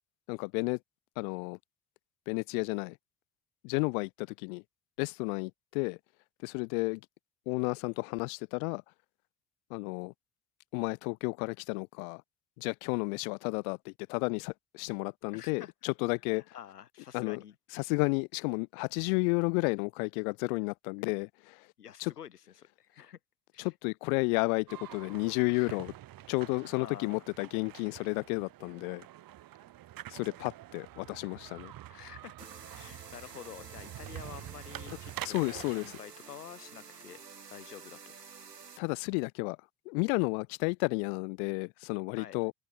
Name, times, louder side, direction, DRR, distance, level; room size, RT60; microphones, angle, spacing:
voice 1, 0.3-0.8 1.2-1.6 2.3-3.0 3.6-4.6 5.0-6.0 6.4-7.0 7.5-8.8 9.7-10.1 10.7-12.2 12.6-16.4 17.1-17.4 17.7-21.6 22.0-22.1 23.6-25.9 26.3-29.1 30.1-31.7 35.2-35.9 38.8-39.6 39.9-42.5, left 33 dB, 60° left, 1.7 m, -32 dB
voice 2, 15.3-15.7 16.3-17.9 21.8-23.2 23.5-23.7 25.5-25.8 26.7-27.2 31.9-32.3 32.7-37.2 37.5-38.1 42.2-42.4, left 9 dB, 75° left, 5.5 m, -49 dB
sound 1, 24.7-36.0, right 14 dB, 45° right, 2.8 m, -47 dB
sound 2, 32.4-38.8, right 6 dB, 85° right, 2.8 m, -50 dB
figure-of-eight pair, 55°, 47 cm